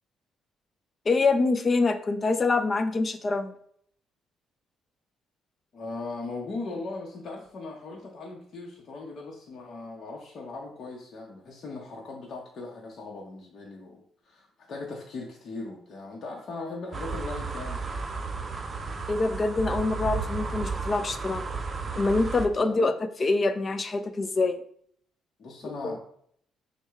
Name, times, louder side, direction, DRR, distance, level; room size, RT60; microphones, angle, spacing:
voice 1, 1.1-3.5 19.1-21.5 21.9-24.6 25.8-26.0, left 3 dB, 35° left, 10 dB, 0.4 m, -25 dB
voice 2, 5.7-17.8 22.5-22.9 25.4-26.0, left 3 dB, 50° left, -2 dB, 0.9 m, -39 dB
sound 1, 16.9-22.5, right 4 dB, 35° right, 0.5 m, -33 dB
6.0 x 2.2 x 3.5 m, 0.64 s
cardioid pair, 90°, 0 cm